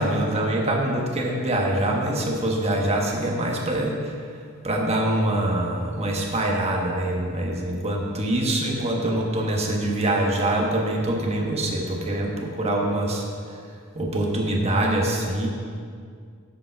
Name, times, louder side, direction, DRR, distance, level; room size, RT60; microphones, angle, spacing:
voice 1, 0.0-4.2 4.6-13.2 13.9-15.5, right 1 dB, 30° right, -1 dB, 1.2 m, -24 dB
8.8 x 5.2 x 5.8 m, 2.1 s
head